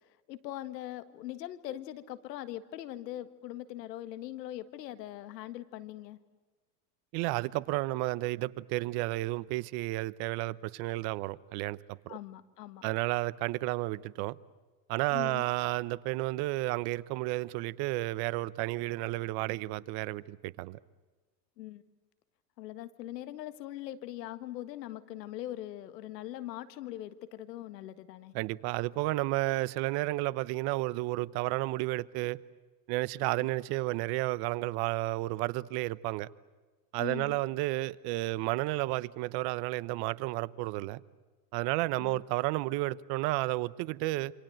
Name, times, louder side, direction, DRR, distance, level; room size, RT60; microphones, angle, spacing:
voice 1, 0.3-6.2 12.1-12.8 15.1-15.4 21.6-21.8 22.6-28.3 37.0-37.4 42.0-42.2, left 14 dB, 80° left, 1.8 m, -41 dB
voice 2, 7.1-12.2 12.8-14.4 14.9-20.8 28.3-32.4 32.9-36.3 36.9-41.0 41.5-44.3, right 19 dB, 50° right, 1.0 m, -32 dB
27.5 x 26.0 x 7.9 m
hypercardioid pair, 110°, 48 cm